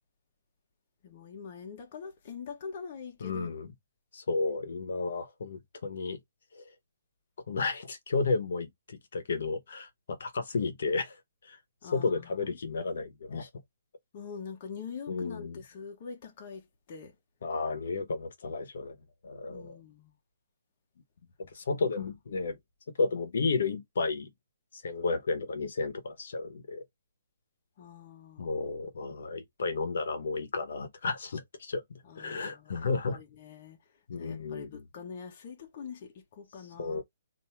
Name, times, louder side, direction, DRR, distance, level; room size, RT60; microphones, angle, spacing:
voice 1, 1.0-3.5 11.8-12.4 14.1-17.1 19.5-20.1 27.8-28.6 32.0-33.8 34.2-37.0, left 6 dB, 30° left, 1.0 m, -44 dB
voice 2, 3.2-3.7 4.1-6.2 6.5-6.7 7.5-11.2 11.4-11.6 11.9-13.5 15.1-15.6 17.4-19.0 19.2-19.8 21.5-22.6 23.0-24.3 24.7-26.8 28.4-33.2 34.1-34.8 36.8-37.0, left 4 dB, 55° left, 1.0 m, -32 dB
3.5 x 2.6 x 4.4 m
hypercardioid pair, 175°, 0 cm